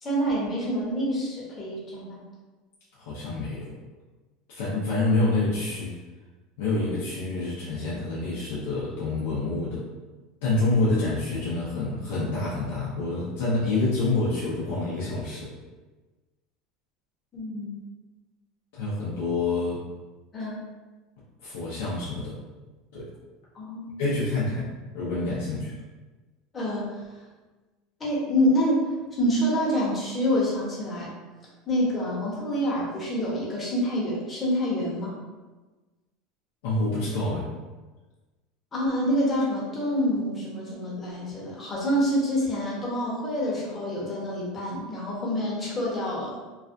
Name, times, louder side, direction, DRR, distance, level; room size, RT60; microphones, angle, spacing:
voice 1, 0.0-2.3 17.3-17.8 20.3-20.7 23.5-23.9 26.5-27.0 28.0-31.1 31.7-35.2 38.7-46.4, equal, 20° left, -5 dB, 0.8 m, -27 dB
voice 2, 3.0-3.7 4.5-5.9 6.6-9.8 10.4-15.5 18.7-19.8 21.4-22.4 22.9-23.1 24.0-24.6 24.9-25.7 36.6-37.5, left 2 dB, 85° left, -7 dB, 0.5 m, -27 dB
2.4 x 2.2 x 2.5 m, 1.2 s
supercardioid pair, 130°, 0 cm